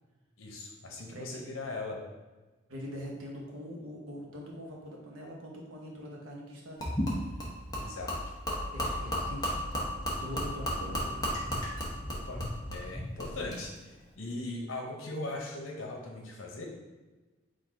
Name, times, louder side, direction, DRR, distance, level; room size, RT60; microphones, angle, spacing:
voice 1, 0.4-2.0 7.8-8.1 12.1-16.6, left 2 dB, 80° left, 0 dB, 0.8 m, -39 dB
voice 2, 2.7-6.9 8.7-9.6 10.2-11.2, equal, 90° right, -1 dB, 1.0 m, -43 dB
Gurgling / Liquid, 6.8-13.6, equal, 20° left, 0.8 m, -34 dB
3.9 x 2.5 x 4.6 m, 1.2 s
head